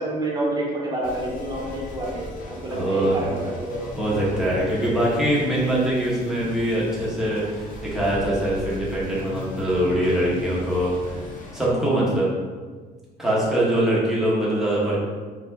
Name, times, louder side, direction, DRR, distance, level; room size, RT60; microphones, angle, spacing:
voice 1, 0.0-3.9 4.2-4.5, right 1 dB, 25° right, -4 dB, 1.0 m, -28 dB
sound 1, 1.0-11.7, left 2 dB, 50° left, 0.7 m, -38 dB
voice 2, 2.7-3.2 3.9-11.2 11.5-12.3 13.2-15.0, right 1 dB, 5° right, -8 dB, 1.2 m, -23 dB
4.0 x 2.5 x 2.7 m, 1.5 s
cardioid pair, 110°, 17 cm